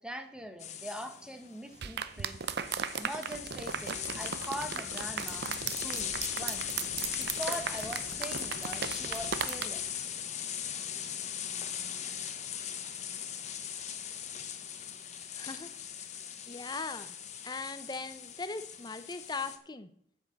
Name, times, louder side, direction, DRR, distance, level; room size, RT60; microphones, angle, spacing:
voice 1, 0.0-2.4 3.0-6.7 7.1-10.1, equal, 5° right, 7 dB, 1.2 m, -42 dB
sound 1, 0.6-19.6, left 9 dB, 40° left, 1.0 m, -39 dB
sound 2, 1.8-9.7, right 7 dB, 55° right, 0.6 m, -37 dB
sound 3, 3.3-9.4, equal, 65° left, 2.0 m, -51 dB
voice 2, 15.3-15.8 16.5-17.2 17.4-19.9, left 3 dB, 20° left, 10 dB, 0.7 m, -39 dB
8.9 x 8.1 x 6.6 m, 0.67 s
head